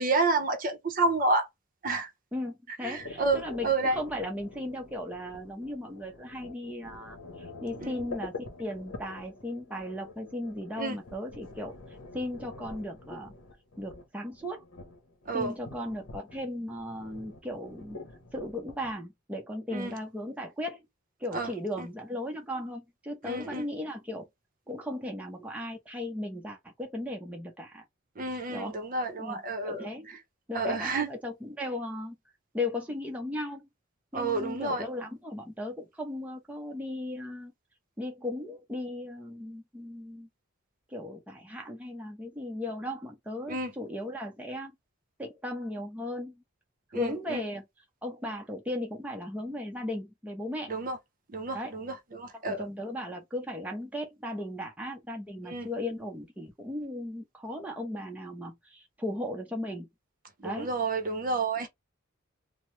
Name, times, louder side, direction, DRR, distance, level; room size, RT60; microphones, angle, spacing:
voice 1, 0.0-1.5 1.8-2.1 2.8-4.0 7.8-7.9 10.8-11.0 15.3-15.5 19.7-19.9 21.3-21.5 21.8-21.9 23.2-23.6 28.2-29.9 30.5-31.1 34.1-34.9 43.5-43.7 46.9-47.4 50.7-51.0 51.3-52.7 55.5-55.7 60.4-61.7, right 3 dB, 45° right, 0.6 m, -30 dB
voice 2, 2.3-8.3 8.6-11.8 12.1-13.3 13.8-14.6 15.3-18.0 18.3-20.9 21.2-24.3 24.7-27.8 28.5-28.8 29.2-30.2 30.5-32.2 32.5-33.7 34.1-37.5 38.0-40.3 40.9-44.8 45.2-46.4 46.9-47.6 48.0-50.7 51.5-51.8 52.3-59.9 60.4-60.7, left 1 dB, 5° right, 0.6 m, -36 dB
sound 1, 3.0-18.9, left 3 dB, 75° left, 0.8 m, -46 dB
2.9 x 2.0 x 3.1 m
head